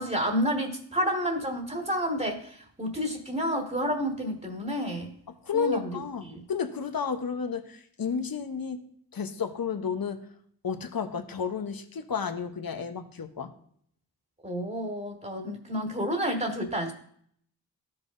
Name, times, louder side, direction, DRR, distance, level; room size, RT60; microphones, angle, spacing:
voice 1, 0.0-5.1 5.5-6.4 14.4-16.9, equal, 20° right, 1 dB, 1.8 m, -30 dB
voice 2, 5.4-8.8 9.1-10.2 10.6-13.5, left 6 dB, 60° left, 7 dB, 1.0 m, -32 dB
13.5 x 5.6 x 2.6 m, 0.64 s
cardioid pair, 40°, 40 cm